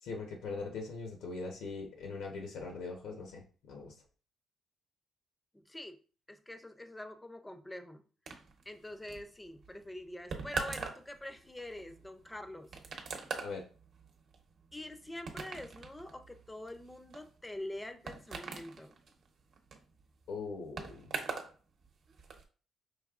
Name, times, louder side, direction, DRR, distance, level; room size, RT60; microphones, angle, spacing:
voice 1, 0.0-3.9 13.4-13.6 20.3-21.1, left 4 dB, 90° left, 2 dB, 0.9 m, -41 dB
voice 2, 5.5-6.0 6.3-8.0 8.7-12.7 14.7-19.0, left 1 dB, 10° left, 9 dB, 0.5 m, -45 dB
sound 1, 8.3-21.5 21.8-22.4, right 5 dB, 60° right, 0.9 m, -43 dB
5.2 x 3.3 x 2.4 m, 0.39 s
cardioid pair, 120°, 0 cm